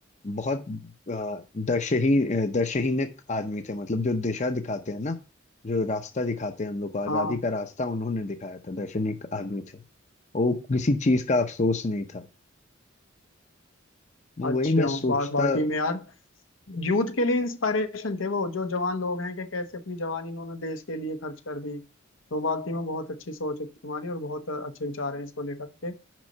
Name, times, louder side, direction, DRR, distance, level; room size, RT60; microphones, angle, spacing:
voice 1, 0.2-5.2 5.6-9.8 10.3-12.2 14.4-15.6, left 2 dB, 35° left, 0.7 m, -27 dB
voice 2, 7.1-7.4 14.4-16.0 16.7-21.8 22.3-26.0, left 2 dB, 90° left, 1.1 m, -29 dB
6.1 x 5.4 x 6.6 m
head